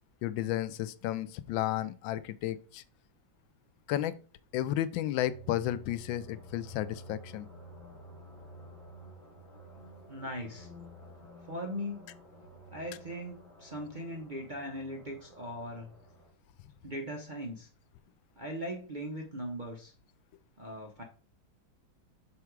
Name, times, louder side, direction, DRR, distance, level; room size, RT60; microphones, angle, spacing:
voice 1, 0.2-2.8 3.9-4.1 4.5-7.5, left 13 dB, 80° left, 15 dB, 1.3 m, -32 dB
sound 1, 5.2-16.3, equal, 40° left, 2.5 m, -52 dB
voice 2, 10.1-10.7 11.5-12.0 12.7-15.9 16.8-17.7 18.4-19.9 20.6-21.0, equal, 40° right, -1 dB, 0.7 m, -39 dB
6.9 x 4.8 x 4.6 m, 0.38 s
omnidirectional pair, 2.1 m